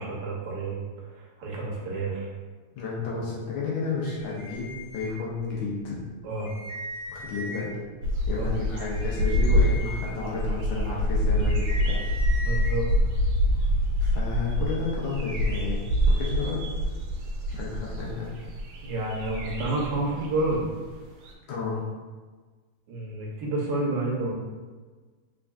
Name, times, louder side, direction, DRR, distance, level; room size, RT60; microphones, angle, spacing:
voice 1, 0.0-2.3 6.2-6.5 8.3-8.5 12.4-12.9 18.8-20.6 22.9-24.3, right 2 dB, 65° right, -2 dB, 1.3 m, -30 dB
voice 2, 2.7-6.0 7.1-7.7 8.3-12.0 14.0-16.6 17.5-18.3 21.5-21.8, left 4 dB, 75° left, -5 dB, 1.5 m, -32 dB
sound 1, 4.0-5.6 6.0-6.1 6.3-7.8 8.4-12.8, equal, 20° left, 1.0 m, -40 dB
sound 2, 8.0-21.0 21.2-21.3, equal, 85° right, 1.5 m, -26 dB
3.6 x 3.4 x 2.3 m, 1.4 s
omnidirectional pair, 2.3 m